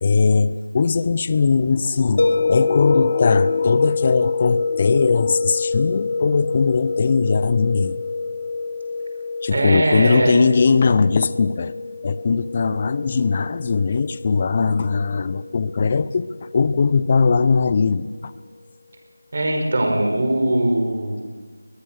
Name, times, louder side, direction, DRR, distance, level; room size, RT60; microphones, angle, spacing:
voice 1, 0.0-8.0 9.4-11.7 12.0-16.3 16.5-18.3, left 4 dB, 30° left, 16 dB, 0.7 m, -19 dB
sound 1, 2.2-17.1, left 4 dB, 50° left, 1.6 m, -26 dB
voice 2, 9.5-10.4 19.3-21.2, right 1 dB, 45° right, 3 dB, 5.2 m, -20 dB
21.0 x 21.0 x 6.5 m, 1.4 s
figure-of-eight pair, 165°, 0 cm